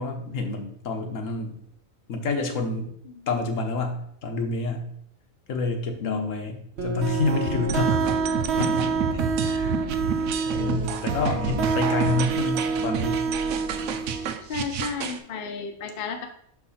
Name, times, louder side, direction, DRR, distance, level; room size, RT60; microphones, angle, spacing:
voice 1, 0.0-1.6 2.1-2.9 3.3-4.9 5.5-8.1 8.6-9.8 10.4-13.2, left 3 dB, 70° left, 4 dB, 1.3 m, -28 dB
voice 2, 6.0-6.4 14.5-16.3, left 5 dB, 50° left, 5 dB, 0.8 m, -32 dB
sound 1, 6.8-14.3, right 5 dB, 55° right, 1.0 m, -27 dB
sound 2, 7.7-15.2, right 7 dB, 85° right, 1.1 m, -30 dB
6.0 x 4.7 x 4.1 m, 0.69 s
omnidirectional pair, 1.4 m